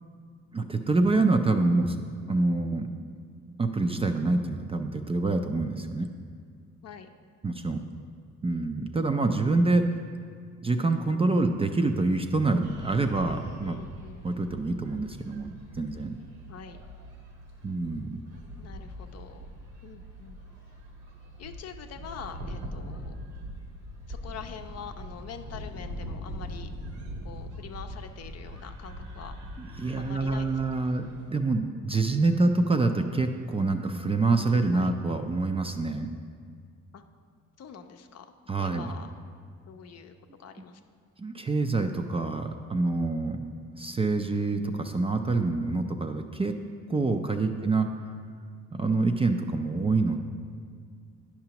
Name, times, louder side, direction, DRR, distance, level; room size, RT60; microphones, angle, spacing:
voice 1, 0.5-2.0 2.3-2.9 3.6-6.1 7.4-7.8 8.4-9.9 10.6-13.8 14.2-16.1 17.6-18.2 29.6-36.1 38.5-38.9 41.2-43.5 43.8-46.6 46.9-47.9 48.7-50.2, right 3 dB, 20° right, 5 dB, 0.3 m, -26 dB
sound 1, 12.6-31.3, equal, 85° right, 1.4 m, -42 dB
voice 2, 13.6-14.2 16.5-16.8 18.6-19.5 19.8-20.4 21.4-23.2 24.1-26.7 27.2-29.3 30.0-30.9 34.7-34.9 36.9-37.0 37.6-39.1 39.7-40.8 47.2-47.7, left 7 dB, 55° left, 7 dB, 0.6 m, -45 dB
10.0 x 5.8 x 2.9 m, 2.1 s
cardioid pair, 90°, 30 cm